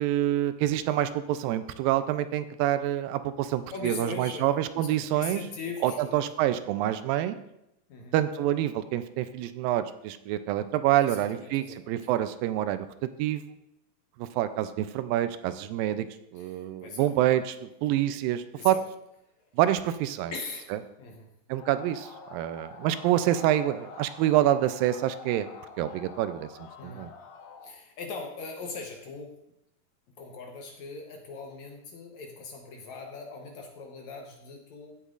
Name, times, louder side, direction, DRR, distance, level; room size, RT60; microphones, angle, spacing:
voice 1, 0.0-5.4 5.8-7.4 8.1-12.9 13.2-13.6 14.2-16.1 16.3-18.8 19.6-20.3 21.5-25.5 25.8-27.1, right 12 dB, 85° right, 11 dB, 2.3 m, -27 dB
voice 2, 3.7-6.3 7.9-8.2 11.0-12.0 16.4-17.1 18.6-18.8 20.3-20.7 21.0-21.3 26.8-27.1 27.6-29.4 30.2-35.0, left 4 dB, 65° left, 2 dB, 2.0 m, -40 dB
sound 1, 21.6-27.7, left 5 dB, 85° left, 2.8 m, -47 dB
15.5 x 8.2 x 2.5 m, 0.83 s
omnidirectional pair, 4.0 m